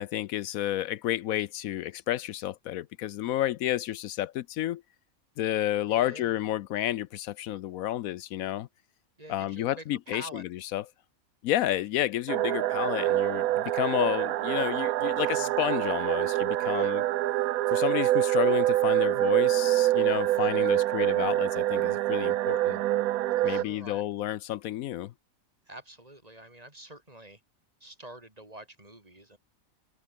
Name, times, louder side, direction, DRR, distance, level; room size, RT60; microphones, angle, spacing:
voice 1, 0.0-4.8 5.4-8.7 9.3-10.8 11.4-17.0 17.7-22.8 23.4-25.1, left 13 dB, 80° left, 1.0 m, -31 dB
voice 2, 5.9-6.4 9.2-10.4 16.6-16.9 23.4-24.1 25.7-27.4 27.8-29.4, right 1 dB, 25° right, 3.8 m, -47 dB
sound 1, 12.3-23.6, right 15 dB, 85° right, 1.0 m, -26 dB
open air
omnidirectional pair, 1.5 m